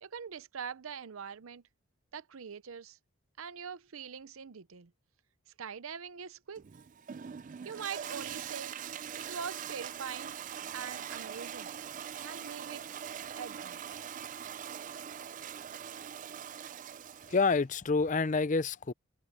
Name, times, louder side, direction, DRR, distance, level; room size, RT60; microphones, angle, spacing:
voice 1, 0.0-1.6 2.1-3.0 3.4-4.9 5.6-6.6 7.6-8.8 9.2-10.3 10.7-11.7 12.2-12.8 13.4-13.8, right 7 dB, 80° right, 0.7 m, -43 dB
Toilet flush, 6.6-17.6, right 8 dB, 40° right, 0.3 m, -42 dB
voice 2, 17.3-18.9, left 4 dB, 35° left, 0.5 m, -28 dB
head